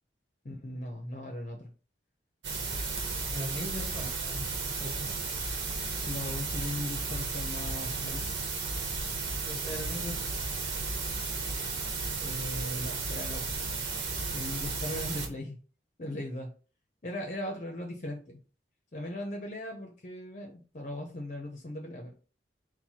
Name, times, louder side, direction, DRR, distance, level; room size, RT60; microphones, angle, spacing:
voice 1, 0.4-1.7 6.0-8.2 12.2-13.7 14.3-15.6 16.0-16.5 17.0-18.4 18.9-22.1, left 1 dB, 45° left, 2 dB, 0.7 m, -38 dB
sound 1, 2.4-15.3, right 4 dB, 90° right, 0.9 m, -34 dB
voice 2, 3.3-4.9 9.4-10.1, left 1 dB, 5° left, -2 dB, 1.6 m, -39 dB
4.5 x 2.2 x 4.2 m, 0.37 s
head